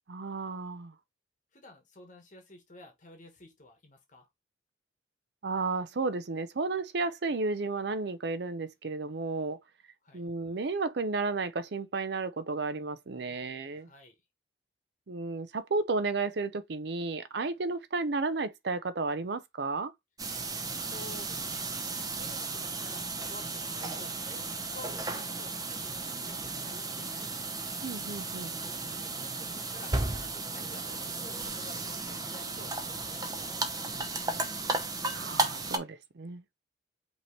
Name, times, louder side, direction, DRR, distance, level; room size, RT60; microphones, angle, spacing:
voice 1, 0.1-0.9 5.4-9.6 10.1-13.9 15.1-19.9 27.8-28.5 35.1-36.4, right 3 dB, 60° right, 0.5 m, -33 dB
voice 2, 1.5-4.3 10.0-10.2 13.1-14.2 20.8-21.7 22.1-27.7 29.0-34.6, left 2 dB, 40° left, 1.1 m, -52 dB
sound 1, 20.2-35.8, right 3 dB, 20° right, 0.6 m, -35 dB
5.4 x 3.0 x 3.0 m
head